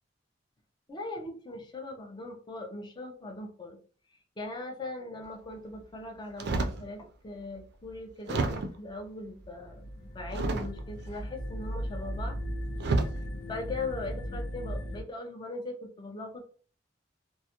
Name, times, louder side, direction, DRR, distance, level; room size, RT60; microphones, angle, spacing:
voice 1, 0.9-3.8 4.4-12.4 13.5-16.4, left 2 dB, 25° left, 3 dB, 0.5 m, -40 dB
sound 1, 6.4-6.9 7.5-7.6 8.3-8.9 10.3-11.0 12.2-12.3 12.8-13.2 13.9-14.2, right 3 dB, 60° right, 0.4 m, -30 dB
sound 2, 9.4-15.0, equal, 85° left, 0.4 m, -37 dB
2.3 x 2.0 x 2.8 m, 0.40 s
head